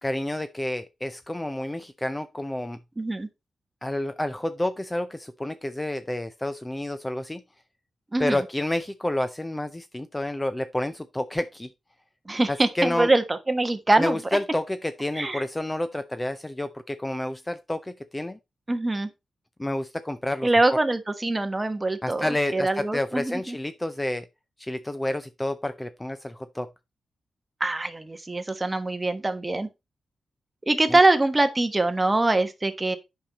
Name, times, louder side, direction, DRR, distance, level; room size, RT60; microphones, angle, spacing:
voice 1, 0.0-2.8 3.8-7.4 8.2-11.7 12.5-13.1 14.0-18.4 19.6-20.5 22.0-24.3 24.6-26.7 30.9-31.0, left 1 dB, 15° left, 0.5 m, -29 dB
voice 2, 3.0-3.3 8.1-8.4 12.3-14.2 15.1-15.4 18.7-19.1 20.4-23.6 27.6-29.7 30.7-33.0, right 2 dB, 20° right, 1.2 m, -23 dB
8.7 x 5.5 x 4.1 m
wide cardioid pair, 110°, 0 cm